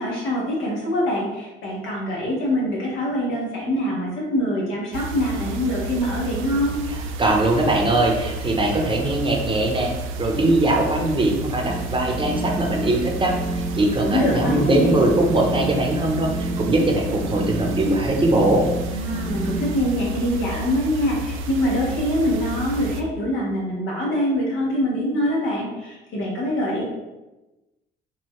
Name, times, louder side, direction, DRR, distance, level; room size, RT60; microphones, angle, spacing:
voice 1, 0.0-6.8 14.0-15.1 18.9-26.8, equal, 90° left, -4 dB, 1.4 m, -24 dB
sound 1, 4.9-23.0, right 2 dB, 90° right, 0.4 m, -31 dB
voice 2, 7.2-9.9 10.2-18.6, right 2 dB, 25° right, 1 dB, 0.8 m, -21 dB
sound 2, 11.7-19.7, right 2 dB, ahead, 0.3 m, -30 dB
4.6 x 2.7 x 3.1 m, 1.1 s
cardioid pair, 90°, 20 cm